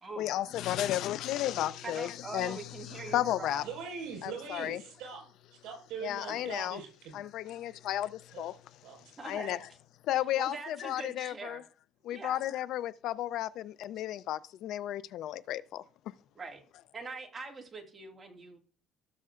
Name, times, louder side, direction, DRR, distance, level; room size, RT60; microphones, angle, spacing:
voice 1, 0.2-2.6 2.9-3.7 4.2-4.8 6.0-6.8 7.1-8.6 9.2-9.6 10.1-11.6 12.0-15.8, left 13 dB, 65° left, 0.5 m, -33 dB
voice 2, 1.8-3.6 4.3-4.8 6.3-6.5 9.2-9.6 10.4-11.6 12.1-12.4 16.4-16.6 16.9-18.6, right 3 dB, 20° right, 2.1 m, -43 dB
voice 3, 3.6-5.2 5.6-7.2 8.3-8.5 8.8-9.0, right 6 dB, 75° right, 5.0 m, -42 dB
16.5 x 6.7 x 2.5 m
cardioid pair, 135°, 0 cm